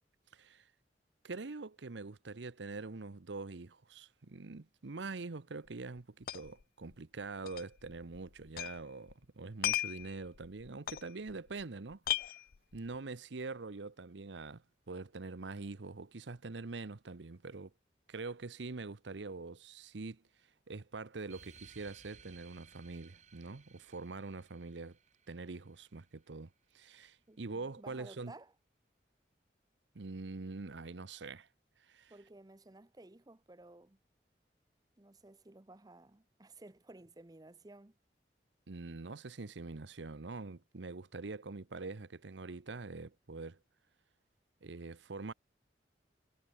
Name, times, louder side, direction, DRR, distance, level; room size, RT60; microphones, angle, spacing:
voice 1, 0.3-0.7 1.2-12.4 12.7-17.7 18.1-20.2 20.7-25.0 25.3-28.3 29.9-31.5 31.9-32.1 38.7-43.6 44.6-45.3, right 3 dB, 85° right, 0.8 m, -44 dB
sound 1, 5.7-5.8 6.0-6.6 6.9-7.0 7.5-8.8 9.1-11.6 11.9-13.0, left 13 dB, 55° left, 0.4 m, -37 dB
sound 2, 21.3-26.3, right 6 dB, 40° right, 3.4 m, -60 dB
voice 2, 27.3-28.5 32.1-34.0 35.0-38.0, right 2 dB, 20° right, 0.7 m, -55 dB
head